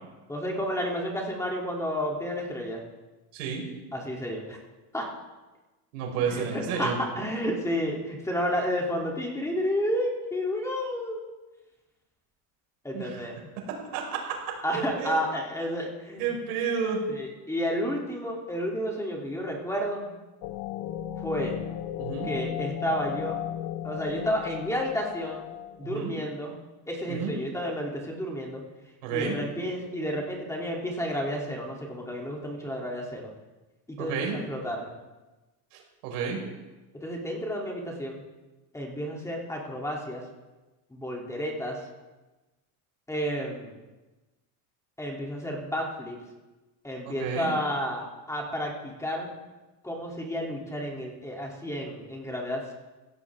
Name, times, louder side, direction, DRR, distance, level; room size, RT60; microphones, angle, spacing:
voice 1, 0.3-2.8 3.9-4.6 4.9-5.1 6.3-11.2 12.8-13.4 14.6-16.3 17.2-20.2 21.2-21.6 22.2-23.4 23.8-25.5 25.8-26.5 26.9-28.6 29.1-33.3 33.9-34.9 37.0-38.2 38.7-40.2 40.9-41.8 43.1-43.8 45.0-46.2 46.8-49.3 49.8-52.7, equal, 5° left, -2 dB, 2.9 m, -31 dB
voice 2, 3.3-3.6 5.9-7.0 12.9-13.2 13.7-14.4 14.7-15.2 16.2-17.0 22.0-22.3 25.8-26.1 27.1-27.3 29.0-29.4 34.0-34.4 35.7-36.4 47.0-47.5, right 6 dB, 85° right, 0 dB, 5.1 m, -31 dB
sound 1, 20.4-26.0, left 11 dB, 65° left, 1.1 m, -35 dB
16.0 x 16.0 x 3.6 m, 1.1 s
cardioid pair, 135°, 42 cm